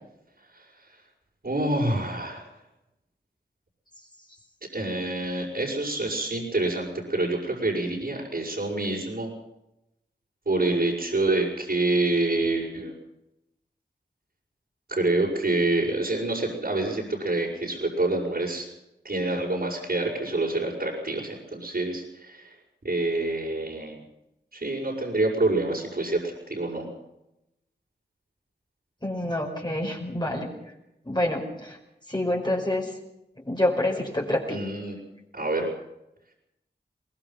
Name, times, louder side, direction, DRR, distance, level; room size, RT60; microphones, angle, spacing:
voice 1, 1.4-2.5 4.7-9.3 10.4-12.9 14.9-18.7 19.0-22.5 22.8-24.0 24.5-26.9 34.5-35.0 35.3-35.7, right 2 dB, 55° right, -6 dB, 6.6 m, -27 dB
voice 2, 29.0-30.5 31.1-31.8 32.1-32.9 33.5-34.6, left 1 dB, 25° left, 0 dB, 5.4 m, -27 dB
23.0 x 19.5 x 5.9 m, 0.88 s
wide cardioid pair, 50°, 19 cm